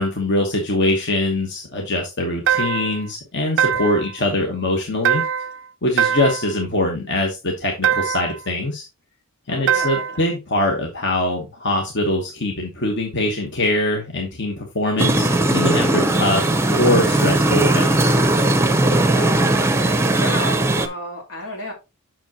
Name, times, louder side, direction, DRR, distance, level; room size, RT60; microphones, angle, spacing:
voice 1, 0.0-5.2 5.8-8.8 9.5-18.2, left 1 dB, 55° left, 1 dB, 1.3 m, -23 dB
sound 1, 2.5-3.0 3.6-4.1 5.1-5.6 6.0-6.5 7.8-8.4 9.7-10.2, right 8 dB, 55° right, 0.4 m, -21 dB
voice 2, 9.5-10.4 19.0-21.7, left 1 dB, 85° left, 0 dB, 3.2 m, -33 dB
sound 2, 15.0-20.9, right 2 dB, 10° right, 0.6 m, -18 dB
7.2 x 6.1 x 2.9 m, 0.26 s
head